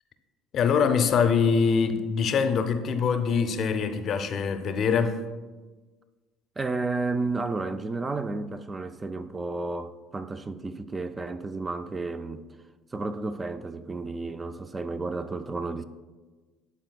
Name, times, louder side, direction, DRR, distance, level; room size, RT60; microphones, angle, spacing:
voice 1, 0.5-5.2, left 6 dB, 55° left, 0.5 m, -24 dB
voice 2, 6.6-12.5 12.9-15.8, right 3 dB, 25° right, 0.4 m, -32 dB
11.0 x 4.0 x 2.3 m
supercardioid pair, 75°, 0 cm